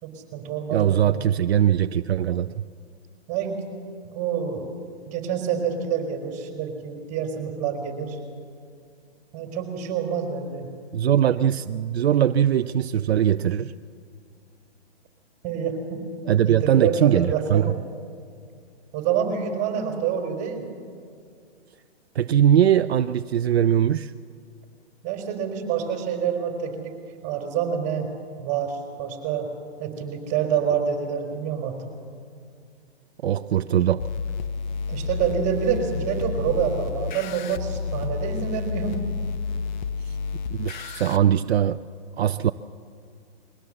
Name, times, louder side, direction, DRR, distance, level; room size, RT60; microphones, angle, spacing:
voice 1, 0.0-1.2 3.3-3.6 4.1-4.7 5.1-8.2 9.3-10.7 15.4-16.0 16.4-17.7 18.9-20.6 25.0-27.0 27.2-28.1 28.4-29.5 29.8-31.9 34.9-39.0, right 7 dB, 20° right, 4.1 m, -27 dB
voice 2, 0.7-2.6 10.9-13.7 16.3-17.7 22.1-24.1 33.2-34.1 40.1-40.2 40.5-41.8 42.2-42.5, right 10 dB, 70° right, 0.6 m, -21 dB
sound 1, 34.0-41.2, left 5 dB, 45° left, 0.9 m, -30 dB
22.0 x 17.0 x 7.7 m
hypercardioid pair, 150°, 33 cm